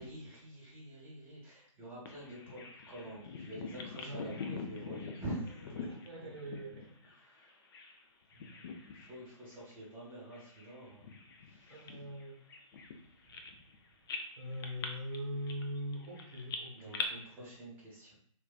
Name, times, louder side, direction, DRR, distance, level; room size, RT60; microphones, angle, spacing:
voice 1, 0.0-5.9 7.1-7.7 8.3-11.1 11.4-12.0 16.7-18.1, right 1 dB, 15° right, -7 dB, 1.0 m, -47 dB
Bird vocalization bird call bird song, 2.1-8.0 8.3-9.2 9.5-9.7 10.3-13.8 14.1-17.1, left 5 dB, 45° left, 0.4 m, -44 dB
voice 2, 4.0-4.4 4.8-5.0 5.8-6.9 11.7-12.4 14.4-17.5, equal, 50° right, -1 dB, 0.9 m, -42 dB
2.5 x 2.2 x 2.3 m, 0.64 s
figure-of-eight pair, 130°, 17 cm